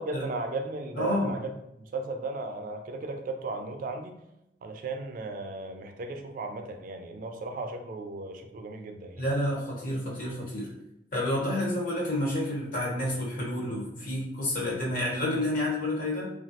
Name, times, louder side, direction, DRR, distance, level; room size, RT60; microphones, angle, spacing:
voice 1, 0.0-1.5 1.8-4.2 4.6-9.2, right 3 dB, 50° right, 5 dB, 0.3 m, -35 dB
voice 2, 1.0-1.3 9.2-10.7 11.1-16.2, left 1 dB, 50° left, -4 dB, 0.9 m, -29 dB
3.1 x 2.3 x 2.7 m, 0.85 s
head